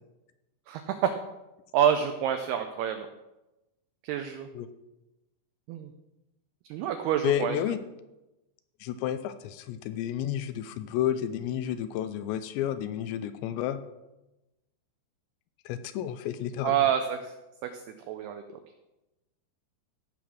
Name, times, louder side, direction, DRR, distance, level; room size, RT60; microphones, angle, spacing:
voice 1, 0.7-1.1 1.7-3.1 4.0-4.5 5.7-5.9 6.7-7.6 16.6-17.3 17.6-17.7 18.1-18.4, right 9 dB, 85° right, 7 dB, 2.2 m, -27 dB
voice 2, 7.2-7.8 8.8-13.8 15.7-16.8, left 11 dB, 80° left, 11 dB, 2.7 m, -31 dB
15.5 x 6.0 x 6.3 m, 1.0 s
omnidirectional pair, 5.4 m